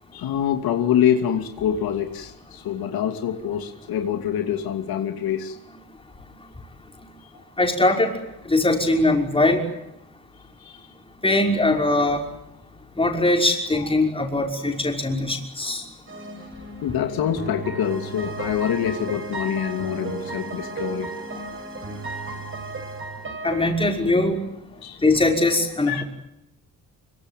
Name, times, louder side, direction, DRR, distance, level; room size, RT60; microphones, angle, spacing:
voice 1, 0.1-5.6 7.3-7.4 10.6-10.8 16.5-21.1 24.8-25.0 25.9-26.0, left 9 dB, 80° left, 5 dB, 2.8 m, -25 dB
voice 2, 7.6-8.1 8.5-9.6 11.2-12.2 13.0-15.8 23.4-24.4 25.0-26.0, left 2 dB, 15° left, 2 dB, 5.7 m, -21 dB
sound 1, 16.1-23.7, right 3 dB, 35° right, 6.9 m, -34 dB
25.0 x 24.5 x 9.3 m, 0.83 s
cardioid pair, 120°, 36 cm